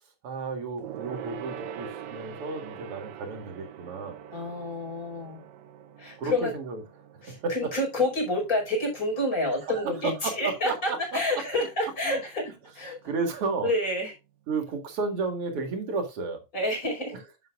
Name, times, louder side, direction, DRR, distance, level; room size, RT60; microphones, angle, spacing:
voice 1, 0.2-4.2 6.2-6.8 7.4-7.5 9.6-11.2 12.0-12.2 13.0-13.7 14.5-16.4, right 4 dB, 50° right, 2.6 m, -32 dB
Gong, 0.8-10.6 10.9-11.1 11.4-11.5, right 9 dB, 85° right, 2.6 m, -43 dB
voice 2, 4.3-5.4 6.0-6.5 7.2-13.0 13.6-14.1 16.5-17.1, left 1 dB, 25° left, 5.3 m, -29 dB
11.0 x 7.6 x 2.5 m
omnidirectional pair, 3.8 m